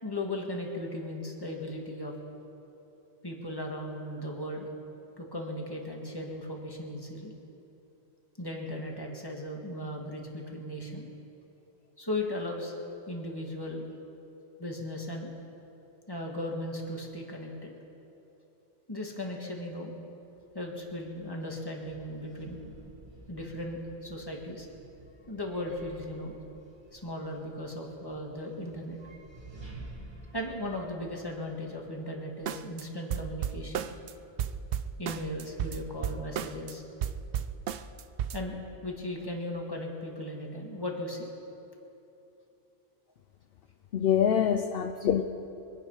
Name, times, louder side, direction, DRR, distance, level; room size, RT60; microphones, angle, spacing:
voice 1, 0.0-2.1 3.2-4.7 5.2-7.3 8.4-11.1 12.0-12.8 13.1-13.8 14.6-15.3 16.1-17.7 18.9-19.9 20.5-22.6 23.3-24.7 25.3-26.3 26.9-29.0 30.3-33.9 35.0-36.8 38.3-41.3, left 1 dB, 20° left, 0 dB, 1.8 m, -37 dB
sound 1, 20.3-32.4, right 2 dB, 20° right, 2.1 m, -52 dB
sound 2, 32.5-32.8 33.1-34.1 34.4-36.7 37.0-38.4, right 9 dB, 60° right, 0.7 m, -33 dB
voice 2, 43.9-45.2, left 9 dB, 60° left, 7 dB, 0.8 m, -25 dB
24.5 x 9.4 x 5.6 m, 3.0 s
omnidirectional pair, 1.2 m